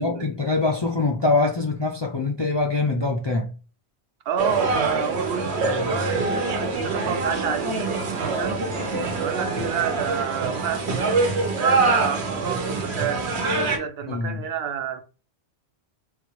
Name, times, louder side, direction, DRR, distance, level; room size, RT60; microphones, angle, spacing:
voice 1, 0.0-3.5 14.1-14.4, left 3 dB, 40° left, 0.3 m, -23 dB
voice 2, 4.3-8.6 9.2-11.2 11.6-13.3 13.6-15.0, right 7 dB, 70° right, 0.8 m, -29 dB
sound 1, 4.4-13.8, right 3 dB, 85° right, 1.1 m, -25 dB
3.8 x 2.4 x 3.0 m
omnidirectional pair, 1.1 m